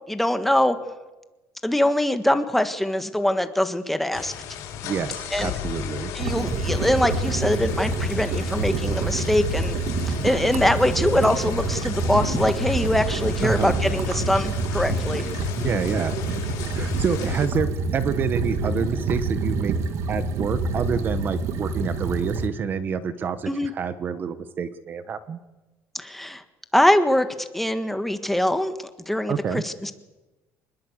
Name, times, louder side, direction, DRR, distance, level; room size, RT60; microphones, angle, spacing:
voice 1, 0.1-0.8 1.6-4.3 5.3-5.5 6.1-9.8 10.2-15.3 23.5-23.7 25.9-26.4 26.7-28.8 29.1-29.9, left 1 dB, 5° left, 9 dB, 1.5 m, -23 dB
sound 1, 4.1-17.5, left 8 dB, 70° left, 6.9 m, -34 dB
voice 2, 4.8-6.1 13.4-13.8 15.5-16.1 16.7-19.7 20.1-25.4 29.3-29.6, right 6 dB, 35° right, 12 dB, 1.3 m, -27 dB
sound 2, 6.2-22.5, right 3 dB, 55° right, 2.7 m, -27 dB
26.5 x 20.5 x 8.0 m, 1.1 s
cardioid pair, 155°, 6 cm